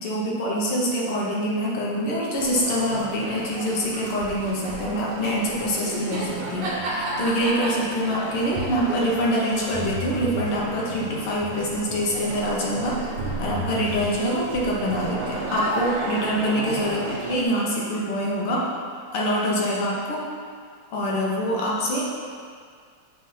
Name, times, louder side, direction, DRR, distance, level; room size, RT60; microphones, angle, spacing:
voice 1, 0.0-18.7 19.1-20.2 20.9-22.0, equal, 85° left, -4 dB, 2.0 m, -25 dB
sound 1, 2.4-17.4, right 2 dB, 85° right, 2.0 m, -32 dB
7.5 x 3.3 x 5.7 m, 2.1 s
omnidirectional pair, 2.4 m